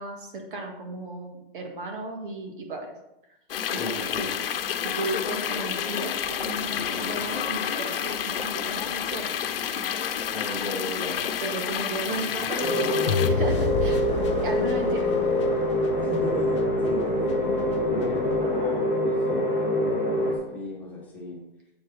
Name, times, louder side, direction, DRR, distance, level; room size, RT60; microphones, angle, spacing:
voice 1, 0.0-2.9 3.7-4.2 4.8-9.4 11.4-12.9 13.3-14.0 14.4-15.1, right 2 dB, 60° right, 3 dB, 1.8 m, -34 dB
sound 1, 3.5-13.3, left 8 dB, 70° left, 0.9 m, -29 dB
voice 2, 3.7-4.3 10.3-11.3 12.1-12.4 14.1-14.3 16.0-21.4, left 2 dB, 5° left, -6 dB, 1.7 m, -35 dB
sound 2, 12.6-20.4, left 1 dB, 20° right, 1.5 m, -25 dB
sound 3, 13.1-19.2, left 7 dB, 30° left, 0.4 m, -33 dB
7.8 x 4.8 x 5.6 m, 0.89 s
hypercardioid pair, 170°, 30 cm